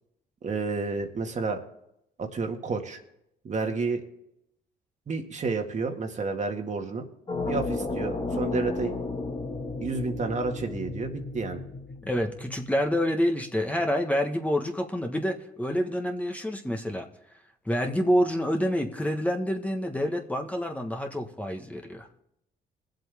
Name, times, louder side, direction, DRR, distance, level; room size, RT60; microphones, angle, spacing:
voice 1, 0.4-1.6 2.2-3.0 3.4-4.0 5.1-7.0 7.5-8.9 9.8-11.6, right 4 dB, 45° right, 4 dB, 1.8 m, -30 dB
sound 1, 7.3-13.1, left 3 dB, 30° left, 1.7 m, -33 dB
voice 2, 12.0-17.1 17.6-22.1, equal, 10° left, 3 dB, 1.3 m, -27 dB
20.5 x 7.9 x 3.5 m, 0.80 s
cardioid pair, 80°, 18 cm